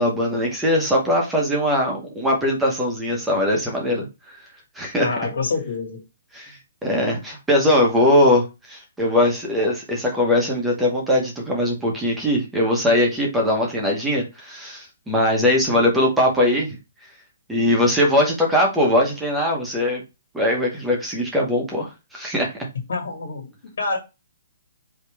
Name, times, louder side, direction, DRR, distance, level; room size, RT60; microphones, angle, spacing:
voice 1, 0.0-4.1 4.8-5.1 6.3-6.5 6.8-16.8 17.5-20.0 20.3-22.5, left 1 dB, 5° right, 0.8 m, -20 dB
voice 2, 5.0-6.0 22.9-24.0, left 4 dB, 75° left, 2.1 m, -27 dB
4.9 x 2.8 x 3.4 m
hypercardioid pair, 180°, 0 cm